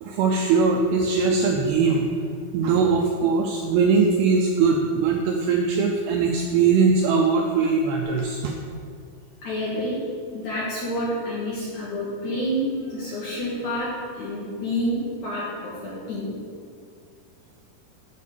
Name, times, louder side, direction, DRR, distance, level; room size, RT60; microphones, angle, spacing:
voice 1, 0.0-2.1 2.5-8.5, right 5 dB, 85° right, 2 dB, 2.3 m, -21 dB
voice 2, 9.4-10.0 10.3-13.9 14.2-16.3, equal, 60° left, -7 dB, 2.1 m, -28 dB
7.3 x 5.5 x 6.6 m, 2.2 s
omnidirectional pair, 5.3 m